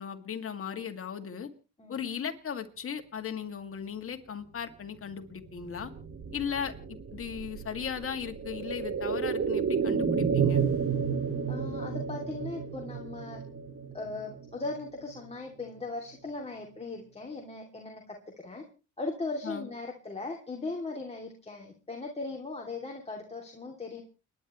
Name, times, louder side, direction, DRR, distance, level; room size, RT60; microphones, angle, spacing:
voice 1, 0.0-1.5 1.9-5.9 6.3-6.7 7.1-10.6 19.4-19.7, left 7 dB, 45° left, 6 dB, 2.4 m, -37 dB
sound 1, 5.5-15.3 15.6-15.7, right 6 dB, 45° right, 2.3 m, -31 dB
voice 2, 11.5-13.4 13.9-18.6 19.0-24.0, left 3 dB, 20° left, 0 dB, 2.9 m, -38 dB
30.0 x 10.5 x 3.2 m, 0.34 s
cardioid pair, 90°, 30 cm